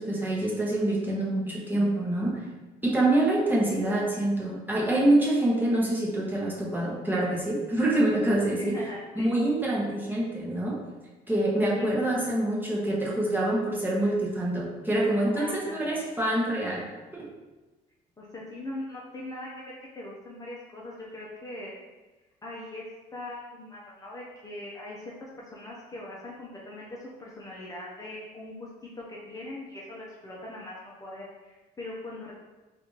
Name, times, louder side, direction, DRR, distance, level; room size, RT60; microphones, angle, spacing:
voice 1, 0.0-2.4 2.8-8.8 9.1-10.8 11.3-16.8 17.1-17.3, right 1 dB, 10° right, -4 dB, 0.9 m, -26 dB
voice 2, 8.6-9.3 11.8-12.0 15.3-16.0 18.2-21.7 22.4-22.8 23.1-28.7 29.0-32.3, left 1 dB, 20° left, -5 dB, 0.6 m, -41 dB
3.9 x 2.5 x 3.1 m, 1.1 s
cardioid pair, 110°, 17 cm